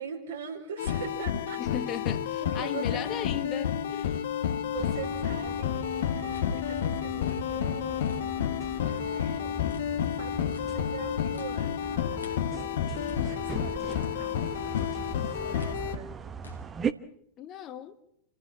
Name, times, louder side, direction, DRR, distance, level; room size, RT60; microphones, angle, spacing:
voice 1, 0.0-1.6 2.4-3.4 4.6-8.3 8.8-9.5 10.2-12.4 13.1-16.1, right 7 dB, 65° right, 4.6 m, -42 dB
sound 1, 0.8-16.0, left 9 dB, 60° left, 1.3 m, -30 dB
voice 2, 1.6-4.2 17.4-18.0, left 9 dB, 30° left, 1.6 m, -36 dB
sound 2, 4.8-16.9, right 6 dB, 20° right, 1.0 m, -40 dB
sound 3, 6.2-8.5 8.9-14.4 14.8-16.6, left 4 dB, 75° left, 2.3 m, -51 dB
28.5 x 14.5 x 7.5 m
figure-of-eight pair, 90°, 0 cm